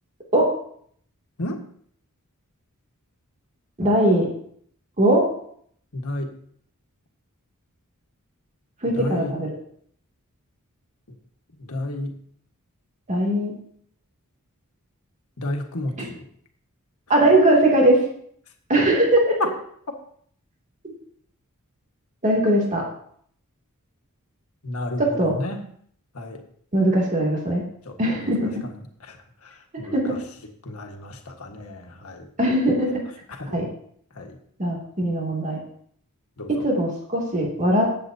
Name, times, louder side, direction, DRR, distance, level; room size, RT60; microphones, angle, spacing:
voice 1, 3.8-4.3 5.0-5.2 8.8-9.5 13.1-13.5 17.1-18.0 18.7-19.2 22.2-22.8 25.0-25.3 26.7-27.6 28.0-28.6 29.9-30.2 32.4-32.9 33.5-33.7 34.6-35.6 36.5-37.9, right 1 dB, 35° right, -2 dB, 2.6 m, -20 dB
voice 2, 5.9-6.3 8.8-9.4 11.6-12.2 15.4-16.3 24.6-25.6 26.1-26.4 27.8-28.8 29.1-29.2 29.4-30.2 30.6-32.3 33.3-33.6 34.1-34.4 36.4-36.7, left 1 dB, 70° left, 3 dB, 1.6 m, -33 dB
20.0 x 7.8 x 2.8 m, 0.63 s
head